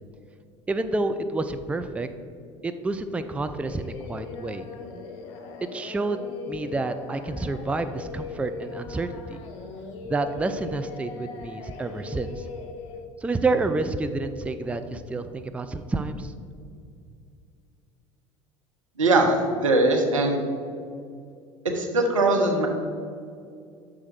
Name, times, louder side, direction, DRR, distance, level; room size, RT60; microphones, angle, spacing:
voice 1, 0.7-2.1 2.6-4.6 5.7-9.4 10.1-12.5 13.2-16.3, right 3 dB, 10° right, 9 dB, 0.4 m, -29 dB
Singing, 3.6-13.0, left 4 dB, 60° left, 0.9 m, -40 dB
voice 2, 19.0-20.4 21.6-22.7, right 2 dB, 85° right, 2 dB, 1.0 m, -21 dB
6.3 x 4.8 x 5.9 m, 2.3 s
hypercardioid pair, 70°, 16 cm